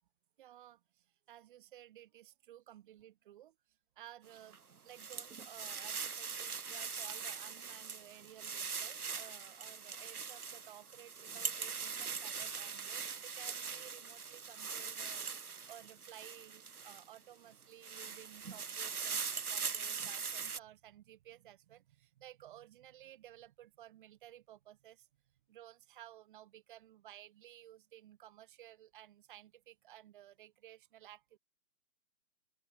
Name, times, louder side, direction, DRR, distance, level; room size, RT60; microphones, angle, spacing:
voice 1, 0.4-3.6 4.0-25.1 25.5-31.4, right 12 dB, 35° right, 7.7 m, -56 dB
sound 1, 4.3-17.2 17.6-20.6, right 6 dB, 75° right, 1.7 m, -42 dB
open air
figure-of-eight pair, 145°, 45 cm